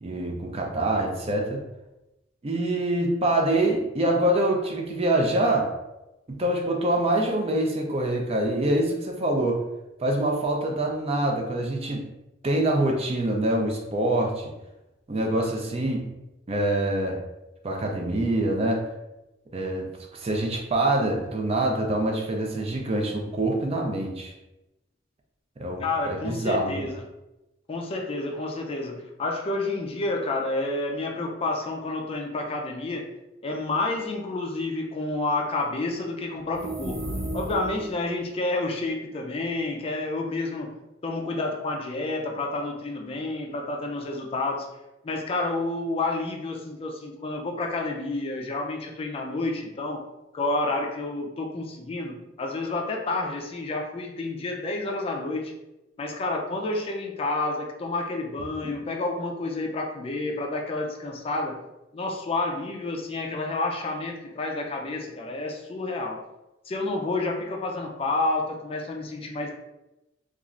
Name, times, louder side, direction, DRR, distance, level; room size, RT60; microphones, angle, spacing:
voice 1, 0.0-1.6 2.4-5.7 6.3-9.6 10.0-12.0 12.4-14.5 15.1-16.0 16.5-17.2 17.6-18.8 19.5-24.3 25.6-26.9, right 1 dB, 35° right, 1 dB, 0.4 m, -25 dB
voice 2, 25.8-26.9 27.7-33.1 33.4-37.1 37.3-40.7 41.0-44.7 45.0-50.0 50.3-55.5 56.0-61.6 61.9-66.2 66.7-69.5, left 2 dB, 30° left, 1 dB, 0.4 m, -29 dB
sound 1, 36.5-38.0, right 1 dB, 70° right, 1.1 m, -33 dB
3.0 x 2.4 x 2.4 m, 0.96 s
head